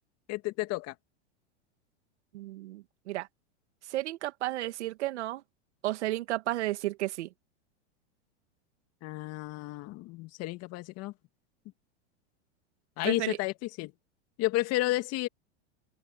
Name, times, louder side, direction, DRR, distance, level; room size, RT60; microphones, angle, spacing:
voice 1, 0.3-0.9 9.0-11.1 13.0-13.9 14.4-15.3, left 18 dB, 45° left, 2.2 m, -31 dB
voice 2, 2.3-3.3 3.8-5.4 5.8-7.3 13.0-13.4, right 16 dB, 75° right, 2.5 m, -33 dB
hypercardioid pair, 120°, 34 cm